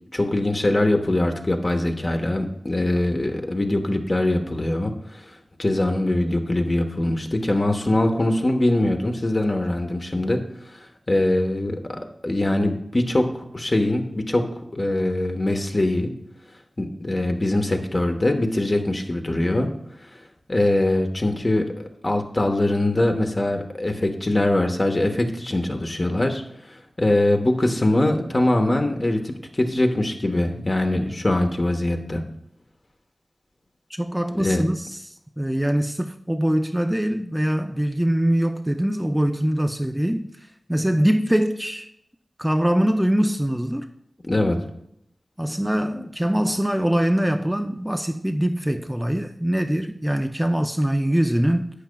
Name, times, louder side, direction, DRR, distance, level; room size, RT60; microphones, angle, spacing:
voice 1, 0.1-10.4 10.7-10.8 11.1-14.5 14.7-16.1 16.8-19.7 20.5-26.4 26.7-32.2 34.4-34.6 44.2-44.6, left 1 dB, 40° left, 1.1 m, -22 dB
voice 2, 33.9-34.9 35.4-40.3 40.7-41.9 42.4-43.9 45.4-51.7, equal, 10° right, 0.5 m, -23 dB
11.5 x 8.3 x 2.3 m
wide cardioid pair, 50°, 0 cm